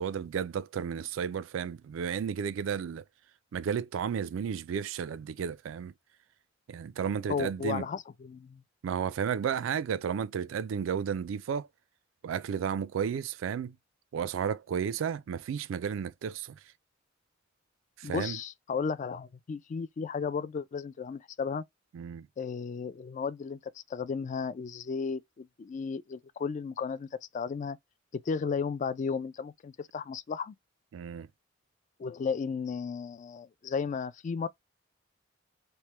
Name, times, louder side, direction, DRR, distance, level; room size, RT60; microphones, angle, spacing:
voice 1, 0.0-3.0 3.5-5.9 6.7-7.8 8.8-11.7 12.2-13.8 14.1-16.6 18.0-18.4 21.9-22.3 30.9-31.3, right 7 dB, 85° right, 0.3 m, -33 dB
voice 2, 7.3-8.6 18.0-21.6 22.4-27.1 27.3-27.8 28.1-30.5 32.0-34.5, left 5 dB, 40° left, 0.3 m, -34 dB
3.2 x 2.1 x 2.8 m
head